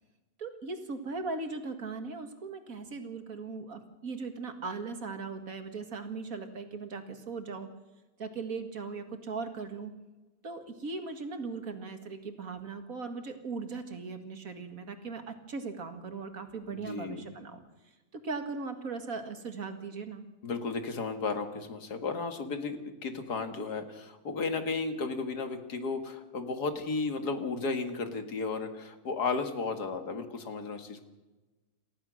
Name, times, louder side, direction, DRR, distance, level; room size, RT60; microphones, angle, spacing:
voice 1, 0.4-7.7 8.2-9.9 10.4-17.6 18.1-20.2, right 4 dB, 60° right, 7 dB, 2.3 m, -38 dB
voice 2, 16.7-17.4 20.4-31.1, left 4 dB, 85° left, 7 dB, 2.4 m, -34 dB
28.5 x 15.0 x 6.4 m, 1.1 s
omnidirectional pair, 1.7 m